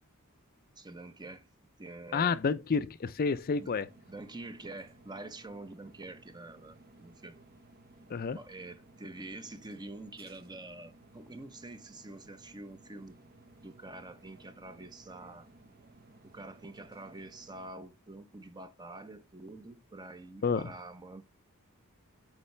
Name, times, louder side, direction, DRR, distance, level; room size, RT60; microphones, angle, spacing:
voice 1, 0.8-1.5 1.8-2.4 3.6-3.7 4.1-7.4 8.3-13.2 13.6-15.5 16.2-21.2, right 2 dB, 20° right, 0.8 m, -46 dB
voice 2, 2.1-3.9 8.1-8.4 20.4-20.7, left 5 dB, 45° left, 0.5 m, -30 dB
sound 1, 3.5-17.7, right 2 dB, 45° right, 1.1 m, -58 dB
8.5 x 4.7 x 3.2 m
head